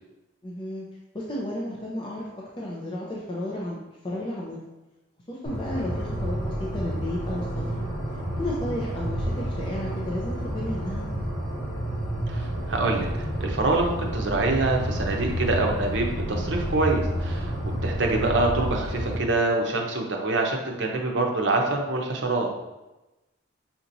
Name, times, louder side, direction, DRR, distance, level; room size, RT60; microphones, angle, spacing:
voice 1, 0.4-0.8 1.1-3.8 4.0-4.6 5.3-7.8 8.4-11.1, left 1 dB, 25° left, -4 dB, 0.5 m, -33 dB
sound 1, 5.4-19.2, right 1 dB, 40° left, 1.5 m, -30 dB
voice 2, 12.3-17.5 17.8-22.5, right 2 dB, 65° right, 1 dB, 0.7 m, -25 dB
5.7 x 2.9 x 2.6 m, 1.0 s
head